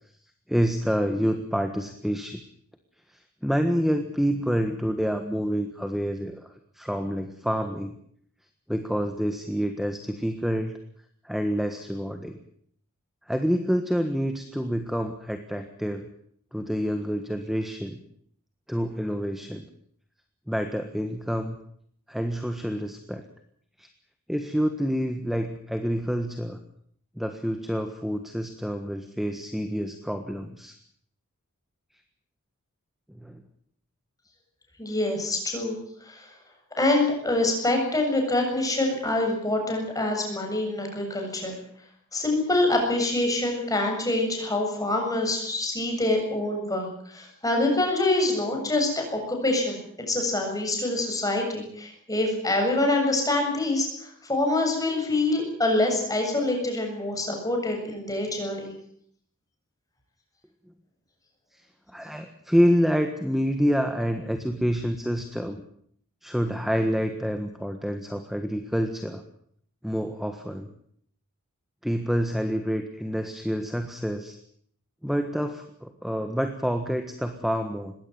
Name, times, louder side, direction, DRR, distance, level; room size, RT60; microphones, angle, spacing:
voice 1, 0.5-2.4 3.4-6.5 6.8-8.0 8.7-10.8 11.2-12.4 13.3-16.1 16.5-18.0 18.7-19.6 20.5-21.6 22.1-23.3 23.8-23.9 24.3-26.6 27.2-30.8 33.1-33.4 61.9-65.6 66.2-69.2 69.8-70.7 71.8-74.4 75.0-77.9, equal, ahead, 7 dB, 1.5 m, -27 dB
voice 2, 34.8-35.8 36.0-36.3 36.8-41.6 42.1-58.7, left 2 dB, 15° left, 2 dB, 7.5 m, -25 dB
21.0 x 17.0 x 9.3 m, 0.64 s
head